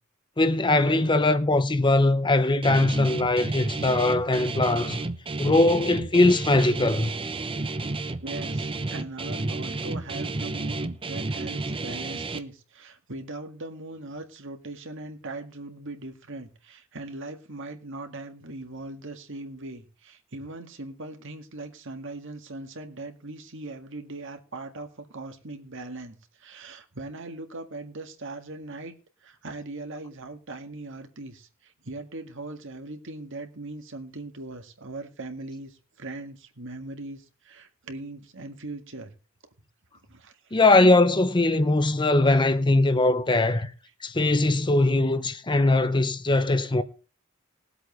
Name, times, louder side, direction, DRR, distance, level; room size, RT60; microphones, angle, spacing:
voice 1, 0.4-5.0 5.4-7.1 40.5-43.7 44.0-46.8, left 2 dB, 20° left, 0.8 m, -21 dB
Guitar, 2.6-12.4, right 2 dB, 25° right, 0.8 m, -31 dB
voice 2, 8.2-28.9 29.2-39.1 40.1-40.6 43.3-43.6, right 2 dB, 60° right, 1.9 m, -40 dB
21.0 x 8.1 x 3.1 m
head